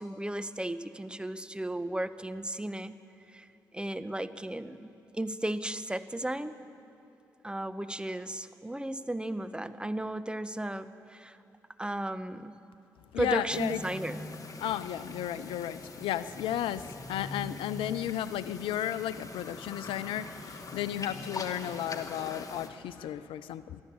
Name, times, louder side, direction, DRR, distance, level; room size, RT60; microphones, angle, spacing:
voice 1, 0.0-2.9 3.3-3.5 3.7-6.6 7.4-11.4 11.8-12.6 13.2-14.2, right 1 dB, 10° right, 11 dB, 1.2 m, -35 dB
voice 2, 13.1-13.8 14.6-23.8, left 11 dB, 75° left, 15 dB, 0.6 m, -34 dB
sound 1, 13.5-22.7, left 3 dB, 40° left, 2.5 m, -43 dB
23.5 x 14.5 x 8.7 m, 2.9 s
hypercardioid pair, 40°, 9 cm